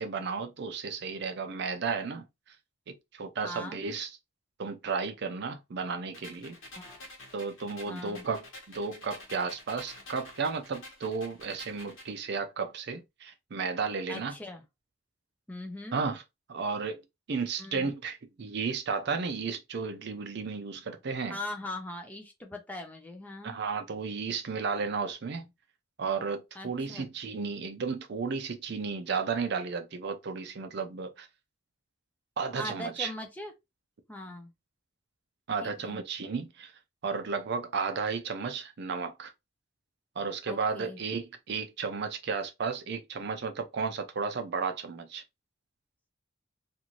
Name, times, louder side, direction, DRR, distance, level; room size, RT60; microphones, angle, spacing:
voice 1, 0.0-2.2 3.1-4.1 4.6-6.6 7.3-8.4 8.7-14.3 15.9-16.2 16.5-17.0 17.3-21.4 23.4-25.5 26.0-31.3 32.4-33.1 35.5-36.7 37.0-39.3 40.2-45.2, right 5 dB, 55° right, 0.5 m, -33 dB
voice 2, 3.4-3.8 6.7-7.1 7.9-8.2 14.1-14.6 15.5-16.0 17.6-17.9 21.3-23.6 26.5-27.1 32.6-33.5 34.1-34.5 35.6-36.0 40.5-41.0, left 1 dB, 10° left, 0.4 m, -40 dB
sound 1, 6.1-12.1, left 1 dB, 75° left, 1.1 m, -49 dB
2.6 x 2.5 x 2.9 m
head